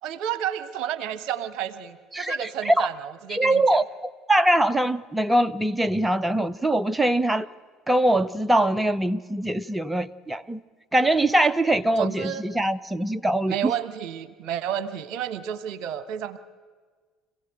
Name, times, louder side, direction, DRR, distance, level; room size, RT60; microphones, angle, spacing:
voice 1, 0.0-3.8 12.0-12.4 13.5-16.4, right 10 dB, 55° right, 1.1 m, -31 dB
voice 2, 2.1-2.9 3.3-3.8 4.3-7.5 7.9-10.6 10.9-13.7, right 1 dB, 10° right, 0.7 m, -22 dB
26.5 x 16.0 x 7.9 m
figure-of-eight pair, 60°, 0 cm